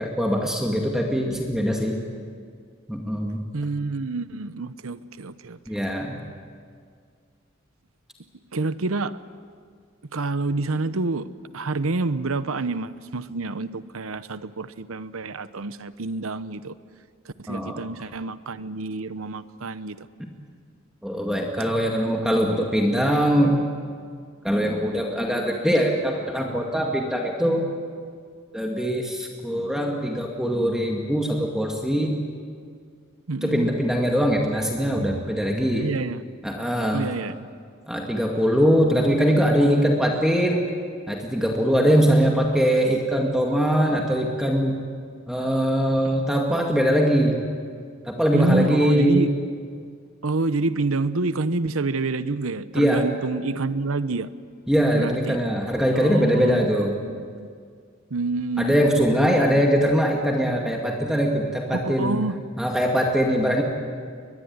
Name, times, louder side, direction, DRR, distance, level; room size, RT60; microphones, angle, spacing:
voice 1, 0.0-2.0 2.9-3.4 5.7-6.2 17.5-17.8 21.0-23.6 24.4-27.7 28.5-32.2 33.4-35.8 36.4-37.0 37.9-40.7 41.1-44.8 45.3-47.4 48.1-49.3 52.7-53.0 54.7-56.9 58.6-62.2 62.6-63.6, equal, 5° right, 0 dB, 2.1 m, -22 dB
voice 2, 3.5-5.8 8.5-9.2 10.1-16.7 17.2-20.1 33.3-33.7 35.8-36.2 36.9-37.4 48.3-49.3 50.2-54.3 54.9-55.4 55.9-57.5 58.1-59.6 61.7-62.4, right 3 dB, 90° right, 14 dB, 0.9 m, -28 dB
23.0 x 21.5 x 9.5 m, 2.1 s
head